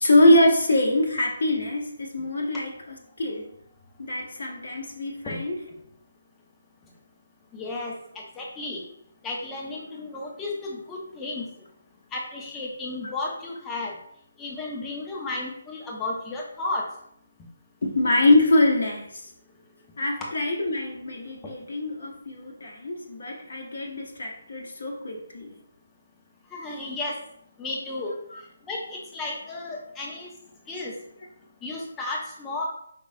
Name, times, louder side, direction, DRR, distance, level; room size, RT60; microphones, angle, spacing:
voice 1, 0.0-2.7 3.2-3.5 4.0-5.6 17.8-19.1 20.0-25.5 28.3-28.4, left 1 dB, 55° left, 0 dB, 0.8 m, -23 dB
voice 2, 7.5-8.8 9.2-11.4 12.1-13.9 14.4-16.9 26.5-27.2 27.6-28.1 28.7-30.3 30.7-30.9 31.6-32.6, left 2 dB, 10° left, -3 dB, 0.8 m, -33 dB
5.2 x 3.3 x 2.6 m, 0.71 s
figure-of-eight pair, 145°, 0 cm